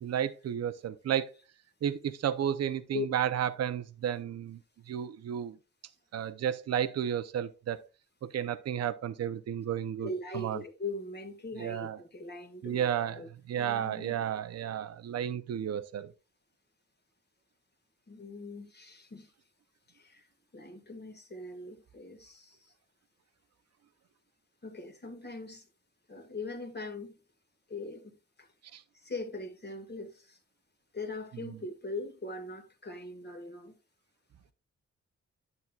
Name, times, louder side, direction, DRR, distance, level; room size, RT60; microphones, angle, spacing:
voice 1, 0.0-1.3 1.8-4.6 4.9-5.6 6.1-7.8 8.3-10.1 10.3-10.6 11.6-12.0 12.6-16.1 28.7-28.8, right 9 dB, 60° right, 0.6 m, -32 dB
voice 2, 10.0-13.3 13.6-14.2 18.1-19.3 19.9-20.3 20.5-22.7 24.6-25.7 26.1-27.1 27.7-28.5 28.9-30.4 30.9-33.8, left 3 dB, 35° left, 1.6 m, -41 dB
9.6 x 7.3 x 2.3 m
cardioid pair, 80°, 29 cm